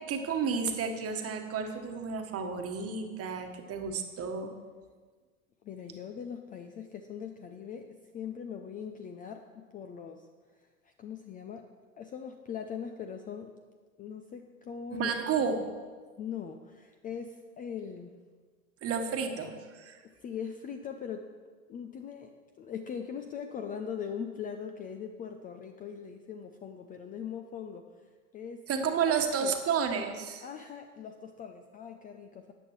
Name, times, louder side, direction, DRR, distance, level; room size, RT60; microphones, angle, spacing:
voice 1, 0.1-4.5 14.9-15.6 18.8-20.0 28.7-30.4, right 6 dB, 30° right, 5 dB, 1.4 m, -31 dB
voice 2, 5.6-10.3 10.8-11.7 12.0-13.5 14.0-15.1 16.2-18.1 20.2-21.3 21.7-27.8 28.3-28.6 29.2-29.5 30.4-32.5, left 7 dB, 20° left, 6 dB, 0.5 m, -41 dB
13.5 x 8.9 x 3.1 m, 1.5 s
hypercardioid pair, 90°, 44 cm